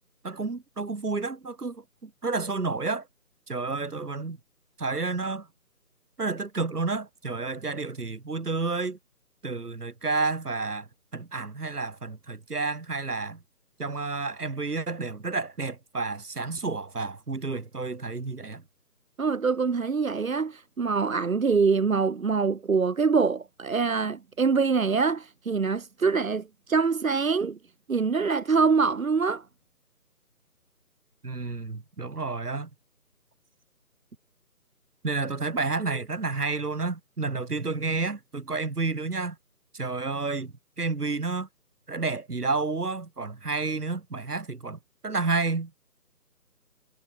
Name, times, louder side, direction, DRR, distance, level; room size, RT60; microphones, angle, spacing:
voice 1, 0.2-3.1 3.5-4.4 4.8-5.5 6.2-9.0 9.4-10.9 11.1-13.4 13.8-18.6 31.2-32.7 35.0-39.4 39.7-41.5 41.9-45.7, right 3 dB, 75° right, 4.1 m, -30 dB
voice 2, 19.2-27.6 27.9-29.4, right 5 dB, 60° right, 1.3 m, -24 dB
figure-of-eight pair, 165°, 46 cm